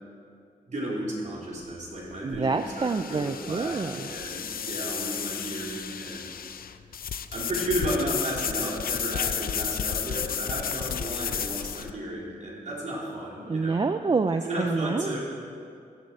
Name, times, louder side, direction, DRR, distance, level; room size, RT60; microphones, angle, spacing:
voice 1, 0.7-6.5 7.3-13.8 14.4-15.2, right 1 dB, 55° right, -5 dB, 4.1 m, -33 dB
sound 1, 1.5-11.9, left 8 dB, 80° left, 0.5 m, -33 dB
voice 2, 2.2-4.1 13.5-15.2, right 4 dB, 30° right, 8 dB, 0.4 m, -27 dB
16.0 x 12.5 x 4.7 m, 2.3 s
wide cardioid pair, 120°, 15 cm